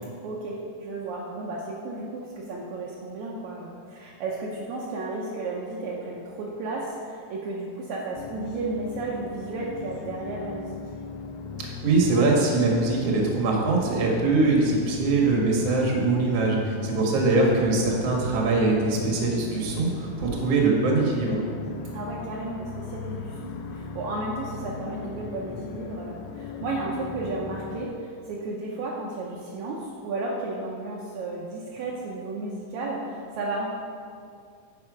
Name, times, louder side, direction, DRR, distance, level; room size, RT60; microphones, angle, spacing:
voice 1, 0.2-10.8 16.7-16.9 21.9-33.7, right 2 dB, 75° right, -4 dB, 2.1 m, -33 dB
sound 1, 8.2-27.9, left 5 dB, 80° left, 1.6 m, -38 dB
voice 2, 11.6-21.4, right 3 dB, 60° right, -1 dB, 2.3 m, -22 dB
9.7 x 5.7 x 4.8 m, 2.3 s
omnidirectional pair, 3.4 m